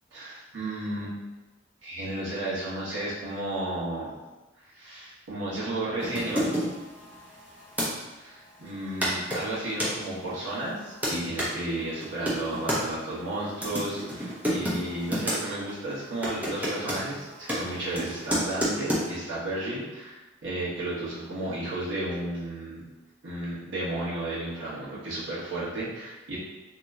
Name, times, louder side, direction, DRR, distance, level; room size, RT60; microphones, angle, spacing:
voice 1, 0.1-1.2 1.8-4.2 4.7-6.5 8.1-22.8 23.2-26.4, right 1 dB, 80° right, -8 dB, 1.2 m, -33 dB
sound 1, 6.0-7.9 8.7-8.8 9.0-9.9 10.6-11.5 12.0-12.8 13.5-15.4 15.7-15.9 16.2-19.0, equal, 10° right, 0.6 m, -30 dB
2.9 x 2.1 x 3.6 m, 1.1 s
head